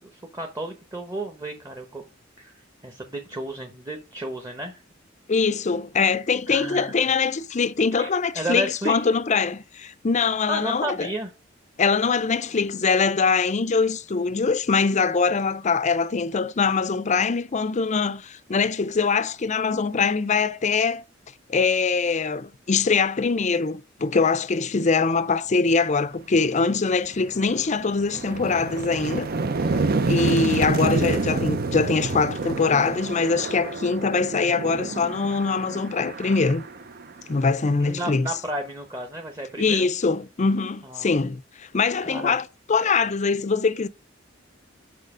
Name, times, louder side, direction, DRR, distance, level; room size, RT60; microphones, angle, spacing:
voice 1, 0.3-2.0 2.4-2.5 2.8-4.8 6.5-7.1 7.9-8.1 8.3-9.0 10.5-11.3 37.8-39.9 40.8-41.1 42.1-42.4, right 1 dB, 20° right, 1.0 m, -32 dB
voice 2, 5.3-11.1 11.8-21.0 21.5-29.3 30.1-36.6 37.3-38.3 39.6-43.9, left 4 dB, 40° left, 0.5 m, -23 dB
sound 1, 26.3-26.5 26.9-37.7, right 3 dB, 50° right, 0.7 m, -28 dB
6.6 x 5.7 x 4.9 m
head